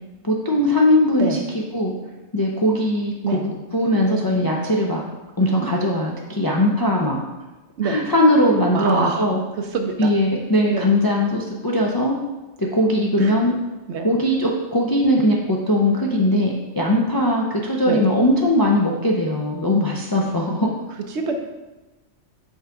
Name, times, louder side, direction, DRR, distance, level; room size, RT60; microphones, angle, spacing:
voice 1, 0.2-1.4 1.7-1.9 2.3-3.4 3.7-5.1 5.4-7.2 7.8-9.4 10.0-12.2 12.6-13.5 14.0-20.7, left 1 dB, 35° left, -2 dB, 0.3 m, -20 dB
voice 2, 8.7-9.3 9.6-10.1 10.7-11.0 13.2-13.3 13.9-14.1 17.9-18.0 21.1-21.4, right 4 dB, 70° right, 5 dB, 0.9 m, -25 dB
5.4 x 3.8 x 4.6 m, 1.1 s
omnidirectional pair, 1.3 m